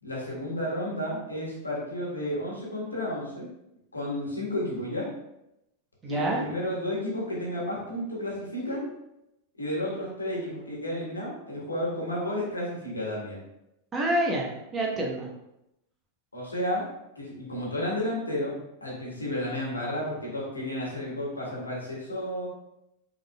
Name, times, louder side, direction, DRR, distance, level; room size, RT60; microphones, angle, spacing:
voice 1, 0.0-3.5 3.9-5.1 6.0-8.9 9.6-13.4 16.3-16.8 17.1-22.5, left 1 dB, 80° left, -4 dB, 1.5 m, -32 dB
voice 2, 6.0-6.4 13.9-15.3, right 1 dB, 20° right, -2 dB, 1.1 m, -27 dB
5.4 x 3.5 x 2.3 m, 0.86 s
figure-of-eight pair, 90°, 0 cm